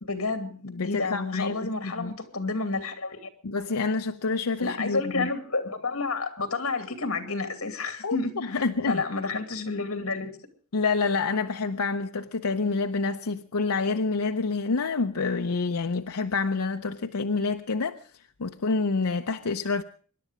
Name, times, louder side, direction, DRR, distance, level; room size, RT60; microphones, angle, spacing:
voice 1, 0.0-3.3 4.6-10.4, left 3 dB, 70° left, 2.5 m, -30 dB
voice 2, 0.7-2.1 3.4-5.3 8.0-9.0 10.7-18.0 18.4-19.8, left 4 dB, 90° left, 0.7 m, -28 dB
25.0 x 11.0 x 4.9 m
head